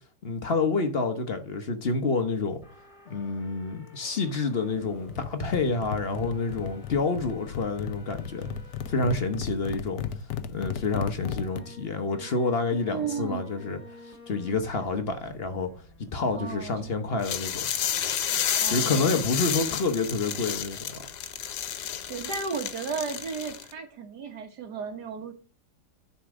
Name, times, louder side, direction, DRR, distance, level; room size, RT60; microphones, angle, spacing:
voice 1, 0.2-2.6 3.1-8.5 8.9-10.0 10.5-13.8 14.1-15.7 16.0-17.6 18.7-21.0, left 3 dB, 45° left, 1.0 m, -28 dB
sound 1, 2.6-5.2 5.9-9.4 9.9-10.0 11.2-22.4, left 2 dB, 20° left, 2.7 m, -52 dB
sound 2, 5.1-11.6, left 8 dB, 70° left, 1.1 m, -35 dB
voice 2, 12.9-13.5 16.3-16.9 18.6-19.2 22.1-25.3, right 5 dB, 80° right, 1.9 m, -34 dB
sound 3, 17.2-23.7, left 9 dB, 90° left, 1.4 m, -31 dB
9.9 x 4.2 x 5.9 m
omnidirectional pair, 1.7 m